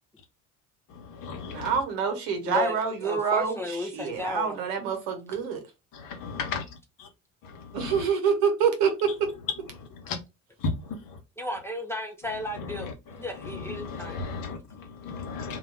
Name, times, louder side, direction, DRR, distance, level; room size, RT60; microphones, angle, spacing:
voice 1, 0.9-1.7 5.9-6.6 7.0-7.1 7.4-8.0 9.7-10.2 10.6-11.2 12.6-12.9 13.4-15.6, left 4 dB, 55° left, 0.9 m, -35 dB
voice 2, 1.4-5.6 7.7-9.3, right 6 dB, 65° right, 1.0 m, -26 dB
voice 3, 2.5-4.6 11.4-14.2, left 2 dB, 5° left, 0.5 m, -34 dB
2.3 x 2.2 x 3.2 m
hypercardioid pair, 65°, 39 cm